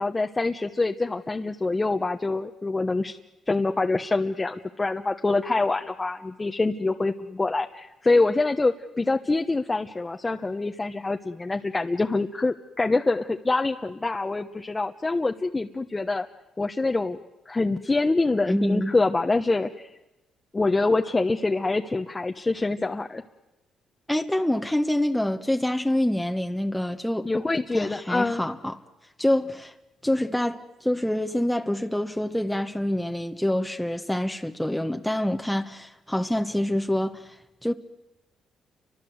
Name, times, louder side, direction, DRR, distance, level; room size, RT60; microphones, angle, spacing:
voice 1, 0.0-3.2 3.5-16.3 16.6-17.2 17.5-19.9 20.5-23.2 27.2-28.4, left 3 dB, 20° left, 1.1 m, -25 dB
voice 2, 18.4-18.9 24.1-27.3 27.7-28.8 29.2-29.7 30.0-37.7, left 1 dB, 5° left, 1.3 m, -26 dB
30.0 x 25.0 x 8.1 m
cardioid pair, 90°, 0 cm